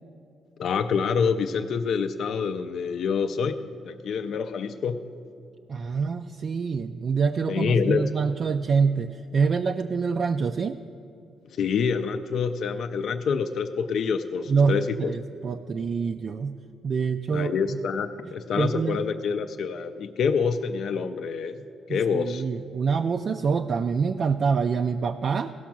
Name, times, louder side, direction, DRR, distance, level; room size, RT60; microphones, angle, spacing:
voice 1, 0.6-3.6 3.8-5.0 7.5-8.1 11.6-15.1 17.3-21.6 21.9-22.4, left 6 dB, 65° left, 7 dB, 0.4 m, -26 dB
voice 2, 5.7-10.8 14.5-16.6 16.8-17.8 18.2-19.0 21.9-25.5, right 5 dB, 45° right, 6 dB, 0.3 m, -26 dB
16.0 x 6.1 x 5.9 m, 2.7 s
cardioid pair, 115°, 0 cm